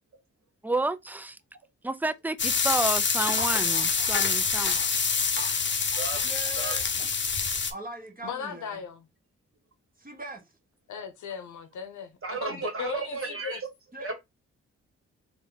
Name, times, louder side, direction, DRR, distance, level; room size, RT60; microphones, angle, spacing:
voice 1, 0.6-1.4 1.8-4.8, right 2 dB, 5° right, 0.4 m, -30 dB
sound 1, 2.4-7.7, left 5 dB, 40° left, 0.8 m, -26 dB
voice 2, 3.3-4.9 5.4-5.5 6.2-6.8 7.7-8.8 10.0-10.4 13.9-14.1, right 2 dB, 30° right, 1.5 m, -41 dB
voice 3, 5.9-6.3 6.6-6.7 12.2-13.6 14.0-14.1, right 4 dB, 45° right, 1.5 m, -34 dB
voice 4, 8.2-9.1 10.9-13.6, left 7 dB, 75° left, 0.9 m, -37 dB
3.4 x 2.3 x 3.9 m
supercardioid pair, 45°, 29 cm